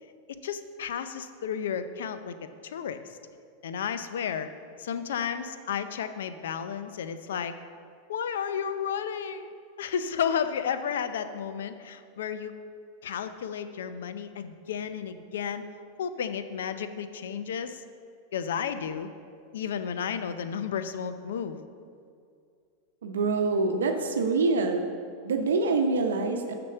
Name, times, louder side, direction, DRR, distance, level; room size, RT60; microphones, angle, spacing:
voice 1, 0.3-2.3 2.6-3.0 3.6-4.5 4.8-7.5 8.1-9.5 9.8-12.5 13.0-15.6 16.0-17.8 18.3-19.1 19.5-21.6, left 7 dB, 80° left, 10 dB, 0.5 m, -32 dB
voice 2, 23.0-24.8 25.2-26.5, right 3 dB, 85° right, 4 dB, 0.7 m, -25 dB
6.5 x 6.0 x 6.8 m, 2.4 s
hypercardioid pair, 105°, 0 cm